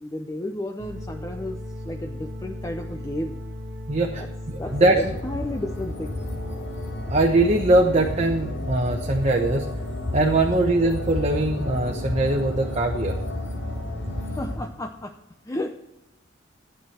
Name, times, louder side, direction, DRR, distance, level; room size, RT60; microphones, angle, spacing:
voice 1, 0.0-3.4 4.2-4.3 4.6-6.2 14.2-15.2 15.4-15.7, left 1 dB, 15° left, 5 dB, 0.6 m, -33 dB
sound 1, 0.8-14.6, left 1 dB, 55° right, 1.4 m, -36 dB
voice 2, 3.9-5.0 7.1-9.7 10.1-13.1, right 2 dB, 35° right, 1 dB, 1.0 m, -21 dB
sound 2, 4.6-14.5, left 2 dB, 75° left, 5.2 m, -32 dB
13.5 x 8.8 x 4.4 m, 0.90 s
head